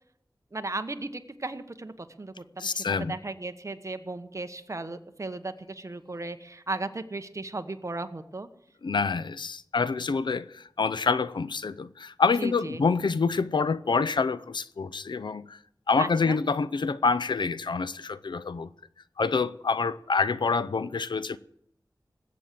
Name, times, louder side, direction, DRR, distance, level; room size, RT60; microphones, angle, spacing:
voice 1, 0.5-8.5 12.4-12.8 16.0-16.4, right 2 dB, 40° right, 1.3 m, -36 dB
voice 2, 2.6-3.1 8.8-15.6 15.9-18.7 19.2-21.4, left 4 dB, 90° left, 0.6 m, -27 dB
20.5 x 8.4 x 7.7 m
wide cardioid pair, 70°, 8 cm